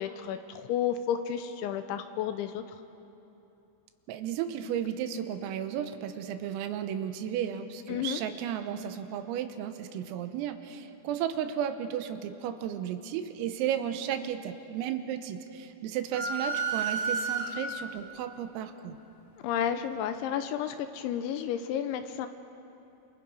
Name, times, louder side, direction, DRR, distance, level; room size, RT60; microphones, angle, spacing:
voice 1, 0.0-2.6 7.9-8.2 19.4-22.3, left 9 dB, 80° left, 9 dB, 2.9 m, -31 dB
voice 2, 4.1-19.0, right 9 dB, 90° right, 8 dB, 3.7 m, -34 dB
sound 1, 16.1-17.9, right 4 dB, 50° right, 1.9 m, -31 dB
28.5 x 27.5 x 5.3 m, 2.9 s
omnidirectional pair, 5.9 m